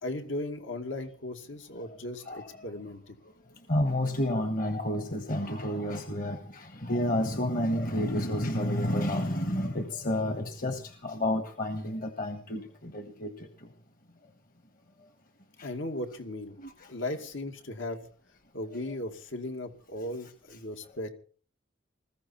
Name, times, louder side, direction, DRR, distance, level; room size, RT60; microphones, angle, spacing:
voice 1, 0.0-3.2 15.6-16.6 16.9-18.1 18.5-21.1, left 1 dB, 80° left, 6 dB, 2.3 m, -37 dB
voice 2, 3.7-13.5 15.6-15.7 16.6-16.9, left 1 dB, 45° left, 7 dB, 1.4 m, -30 dB
20.5 x 14.5 x 4.5 m, 0.43 s
head